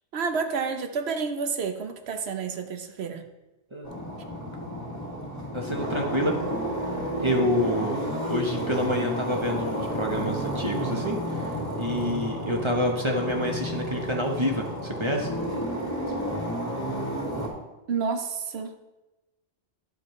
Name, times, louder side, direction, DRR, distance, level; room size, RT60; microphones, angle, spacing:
voice 1, 0.1-3.3 17.9-18.7, right 5 dB, 70° right, 7 dB, 1.1 m, -29 dB
sound 1, 3.8-17.5, equal, 25° left, 2.6 m, -31 dB
voice 2, 5.5-6.3 7.2-11.5 11.8-15.3, equal, 25° right, 1 dB, 1.0 m, -27 dB
10.5 x 7.4 x 3.2 m, 1.0 s
omnidirectional pair, 1.1 m